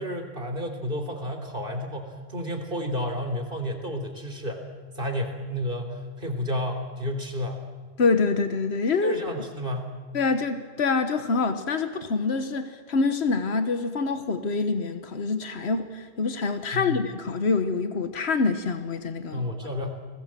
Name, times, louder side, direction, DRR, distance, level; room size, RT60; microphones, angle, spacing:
voice 1, 0.0-4.7 4.9-7.6 9.0-10.0 16.7-17.0 19.3-19.9, equal, 55° right, 3.6 m, -31 dB
voice 2, 8.0-9.2 10.1-19.4, left 4 dB, 80° left, 1.5 m, -26 dB
29.5 x 20.5 x 7.6 m
omnidirectional pair, 1.1 m